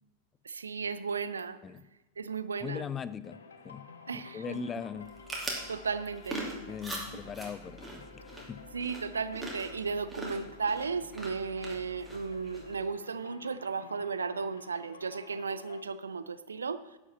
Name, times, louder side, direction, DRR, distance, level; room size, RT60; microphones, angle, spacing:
voice 1, 0.4-1.6 2.2-2.8 4.1-4.6 5.7-6.6 8.7-17.0, right 5 dB, 75° right, 14 dB, 0.5 m, -35 dB
voice 2, 2.6-3.4 3.6-5.1 6.7-8.7, left 7 dB, 20° left, 16 dB, 0.4 m, -40 dB
sound 1, 3.2-15.8, left 4 dB, 70° left, 0.9 m, -51 dB
sound 2, 5.0-12.9, right 1 dB, 5° right, 2.5 m, -42 dB
11.0 x 5.5 x 7.2 m, 1.1 s
figure-of-eight pair, 90°, 0 cm